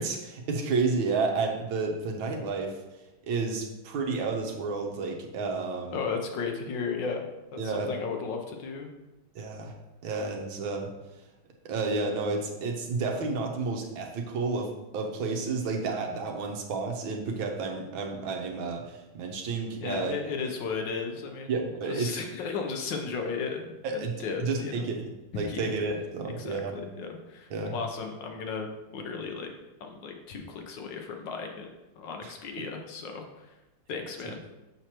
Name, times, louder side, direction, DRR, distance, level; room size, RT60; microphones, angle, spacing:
voice 1, 0.0-2.7 3.3-6.0 7.6-7.9 9.4-9.7 10.0-10.9 11.7-20.1 21.5-22.1 23.8-24.1 24.4-25.1 25.3-26.7 27.5-27.7 32.2-32.3, right 4 dB, 80° right, 2 dB, 1.6 m, -31 dB
voice 2, 5.9-8.9 19.5-21.5 21.8-24.9 25.3-25.7 26.4-29.5 29.8-31.7 32.0-33.5 33.9-34.4, left 5 dB, 70° left, 3 dB, 1.4 m, -35 dB
6.6 x 6.1 x 2.9 m, 1.0 s
omnidirectional pair, 2.2 m